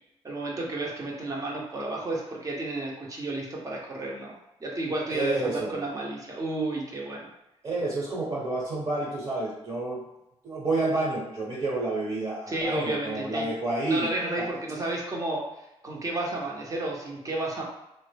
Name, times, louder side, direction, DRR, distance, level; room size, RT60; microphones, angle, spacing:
voice 1, 0.2-4.3 4.6-7.3 12.5-13.5 13.8-15.4 15.8-17.6, right 2 dB, 30° right, -2 dB, 0.9 m, -31 dB
voice 2, 5.1-5.8 7.6-10.0 10.4-14.5, right 2 dB, 50° right, -6 dB, 1.2 m, -29 dB
3.3 x 2.1 x 3.3 m, 0.89 s
cardioid pair, 90°, 11 cm